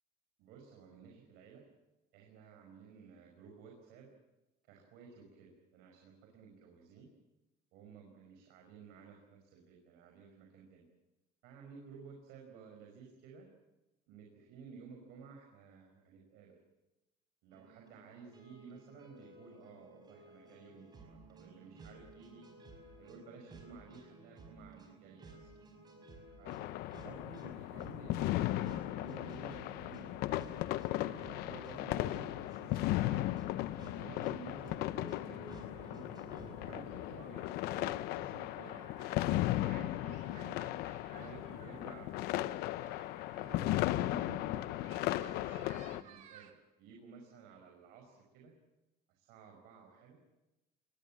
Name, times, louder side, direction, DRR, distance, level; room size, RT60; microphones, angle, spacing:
voice 1, 0.4-1.6 2.1-4.1 4.6-7.1 7.7-10.8 11.4-13.5 14.1-16.6 17.4-22.4 23.0-25.5 26.4-26.6 27.0-30.5 31.0-33.3 33.9-34.7 35.0-36.0 36.4-40.8 41.1-42.5 43.4-46.5 46.8-48.5 49.1-50.2, right 5 dB, 70° right, 1 dB, 5.2 m, -54 dB
sound 1, 17.5-36.8, right 2 dB, 25° right, 5.5 m, -55 dB
sound 2, 26.5-46.0, left 15 dB, 65° left, 0.8 m, -36 dB
sound 3, 29.0-46.5, right 8 dB, 45° right, 2.9 m, -62 dB
25.5 x 20.5 x 7.5 m, 1.0 s
cardioid pair, 170°, 18 cm